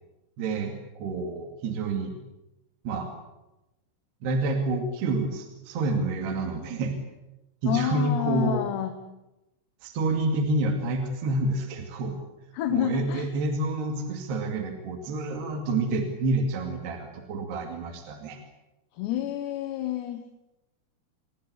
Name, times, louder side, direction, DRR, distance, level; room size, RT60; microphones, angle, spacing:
voice 1, 0.4-2.2 2.8-3.1 4.2-7.0 7.6-8.6 9.8-12.1 12.7-18.4, right 2 dB, 60° right, 4 dB, 4.2 m, -28 dB
voice 2, 7.7-9.0 12.5-13.3 19.0-20.2, left 12 dB, 70° left, 7 dB, 3.1 m, -28 dB
27.5 x 21.5 x 8.3 m, 0.97 s
omnidirectional pair, 5.7 m